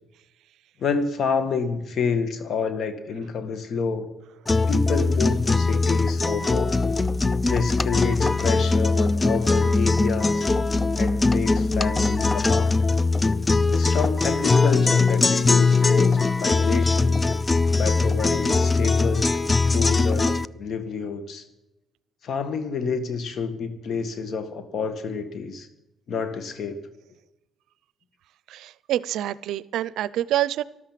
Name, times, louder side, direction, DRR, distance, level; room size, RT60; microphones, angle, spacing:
voice 1, 0.8-4.1 4.7-6.7 7.4-10.4 11.0-12.8 13.7-17.3 17.7-19.4 19.7-21.4 22.2-25.7 26.1-26.9, left 5 dB, 60° left, 10 dB, 1.9 m, -28 dB
sound 1, 4.5-20.5, left 3 dB, 25° left, 0.5 m, -21 dB
voice 2, 28.5-30.6, right 13 dB, 85° right, 19 dB, 0.5 m, -27 dB
13.5 x 12.5 x 7.5 m, 0.97 s
cardioid pair, 90°, 0 cm